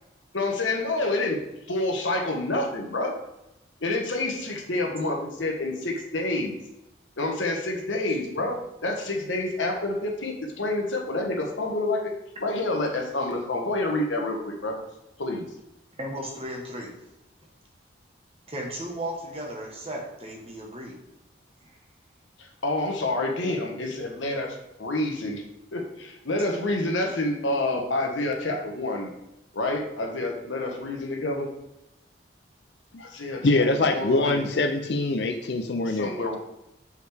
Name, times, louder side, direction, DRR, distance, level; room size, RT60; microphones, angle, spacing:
voice 1, 0.3-1.4 1.7-3.1 3.8-6.5 7.2-12.1 12.4-14.8 15.2-15.5 22.6-25.4 25.7-29.1 29.5-31.5 33.0-34.5 35.9-36.4, left 2 dB, 90° left, 2 dB, 1.2 m, -28 dB
voice 2, 16.0-16.9 18.5-21.0, right 1 dB, 30° right, 0 dB, 1.3 m, -35 dB
voice 3, 33.4-36.4, left 2 dB, 60° left, 7 dB, 0.5 m, -24 dB
6.3 x 4.9 x 3.5 m, 0.91 s
head